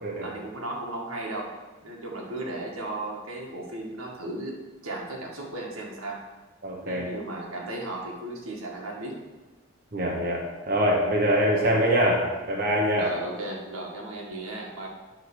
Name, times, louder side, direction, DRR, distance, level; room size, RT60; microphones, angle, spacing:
voice 1, 0.2-1.6 1.8-4.5 4.8-6.2 6.8-9.2 11.5-11.8 12.9-14.9, right 2 dB, 90° right, -2 dB, 1.9 m, -35 dB
voice 2, 6.6-7.1 9.9-10.4 10.7-13.1, equal, 45° right, -2 dB, 1.1 m, -24 dB
10.5 x 3.8 x 6.3 m, 1.2 s
head